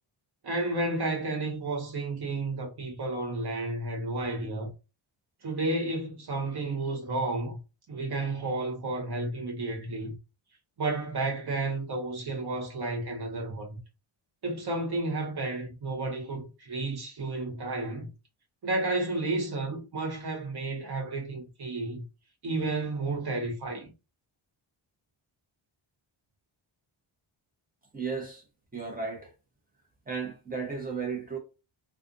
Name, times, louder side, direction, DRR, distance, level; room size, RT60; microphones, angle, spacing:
voice 1, 0.4-4.7 5.4-7.6 7.9-10.1 10.8-13.8 14.4-18.1 18.6-22.0 22.4-23.9, right 2 dB, 50° right, 0.8 m, -32 dB
voice 2, 27.9-28.4 28.7-29.3 30.1-31.4, right 5 dB, 20° right, 0.9 m, -34 dB
2.5 x 2.4 x 2.5 m
wide cardioid pair, 130°, 49 cm